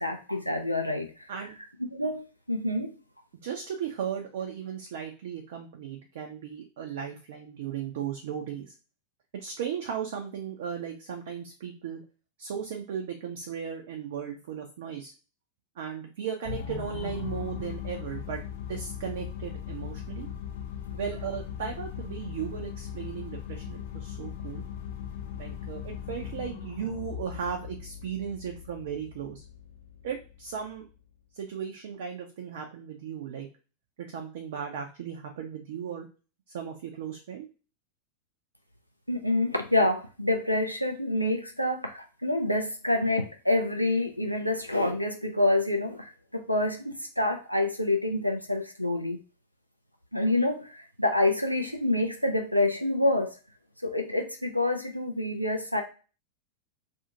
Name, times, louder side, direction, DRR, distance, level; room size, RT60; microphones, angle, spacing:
voice 1, 0.0-1.3 1.9-2.2 2.5-2.9 39.1-49.2 50.1-53.4 53.8-55.8, left 1 dB, 90° left, 3 dB, 0.4 m, -27 dB
voice 2, 3.4-8.7 9.4-12.0 12.4-15.1 15.8-18.4 18.7-20.3 21.0-24.6 25.3-29.4 30.0-30.9 31.3-33.5 34.0-36.1 36.5-37.5, right 8 dB, 55° right, 2 dB, 0.5 m, -36 dB
sound 1, 16.4-30.9, left 9 dB, 60° left, 0.8 m, -39 dB
2.5 x 2.4 x 2.9 m, 0.35 s
figure-of-eight pair, 90°, 0 cm